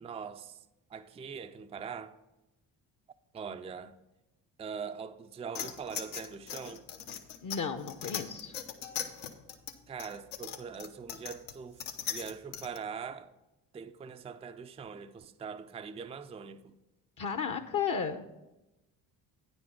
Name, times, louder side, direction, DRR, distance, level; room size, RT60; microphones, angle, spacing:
voice 1, 0.0-0.6 0.9-2.2 3.3-4.0 4.6-6.9 9.9-11.8 12.1-13.3 13.7-16.8, right 6 dB, 15° right, 0.4 m, -42 dB
sound 1, 5.5-12.8, left 8 dB, 80° left, 1.0 m, -40 dB
voice 2, 7.4-8.6 17.2-18.2, left 6 dB, 40° left, 0.7 m, -33 dB
9.2 x 5.3 x 5.7 m
hypercardioid pair, 55°, 48 cm